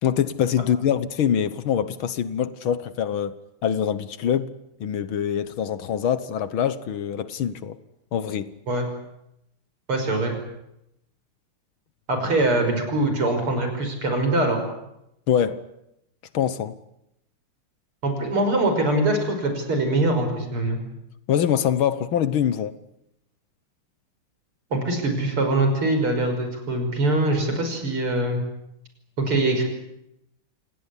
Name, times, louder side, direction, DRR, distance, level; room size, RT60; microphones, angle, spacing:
voice 1, 0.0-4.5 4.8-7.8 8.1-8.5 15.3-15.6 16.3-16.8 21.3-22.8, left 9 dB, 70° left, 1.9 m, -24 dB
voice 2, 9.9-10.4 12.1-14.6 18.0-20.8 24.7-28.4 29.2-29.6, right 2 dB, 75° right, 6.5 m, -23 dB
28.0 x 18.0 x 10.0 m
omnidirectional pair, 2.4 m